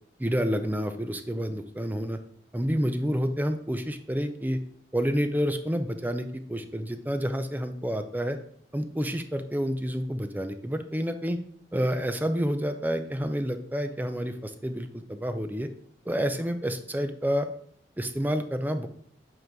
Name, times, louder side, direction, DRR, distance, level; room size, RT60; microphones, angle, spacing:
voice 1, 0.2-2.2 2.5-4.6 4.9-8.4 8.7-11.4 11.7-15.7 16.1-17.5 18.0-18.9, equal, 10° right, 8 dB, 0.4 m, -29 dB
8.0 x 3.8 x 4.6 m, 0.64 s
head